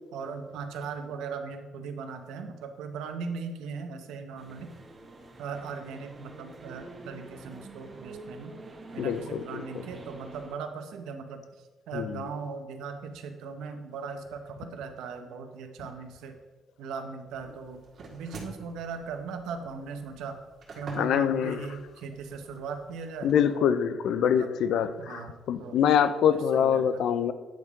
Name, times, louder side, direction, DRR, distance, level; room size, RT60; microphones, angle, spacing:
voice 1, 0.1-4.7 5.4-8.5 8.9-16.4 16.8-17.8 18.1-20.4 20.7-23.8 24.2-24.5 25.0-25.8 26.2-27.0, right 5 dB, 90° right, 7 dB, 0.8 m, -39 dB
sound 1, 4.4-10.5, right 2 dB, 30° right, 1.1 m, -47 dB
voice 2, 9.0-9.6 11.9-12.2 21.0-21.6 23.2-25.2 25.5-27.3, left 8 dB, 75° left, 13 dB, 0.4 m, -25 dB
sound 2, 17.3-23.6, right 3 dB, 55° right, 1.7 m, -49 dB
9.1 x 3.6 x 4.7 m, 1.3 s
cardioid pair, 90°, 0 cm